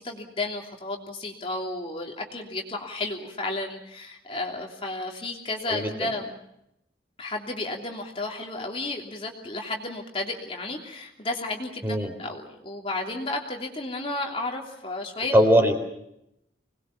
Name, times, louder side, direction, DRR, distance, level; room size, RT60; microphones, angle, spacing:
voice 1, 0.0-6.4 7.2-15.3, left 2 dB, 30° left, 1 dB, 3.0 m, -33 dB
voice 2, 5.7-6.1 11.8-12.1 15.3-15.7, equal, 10° right, 5 dB, 4.0 m, -20 dB
26.5 x 20.5 x 7.1 m, 0.80 s
head